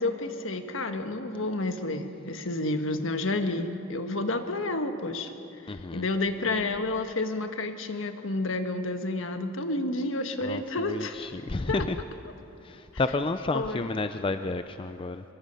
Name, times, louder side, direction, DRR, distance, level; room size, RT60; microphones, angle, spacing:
voice 1, 0.0-5.3 5.6-11.3 11.7-11.8 13.5-13.9, left 2 dB, 70° left, 7 dB, 1.4 m, -30 dB
voice 2, 5.7-6.1 10.4-12.0 12.6-15.2, left 3 dB, 25° left, 9 dB, 0.5 m, -31 dB
24.0 x 23.0 x 5.5 m, 2.9 s
head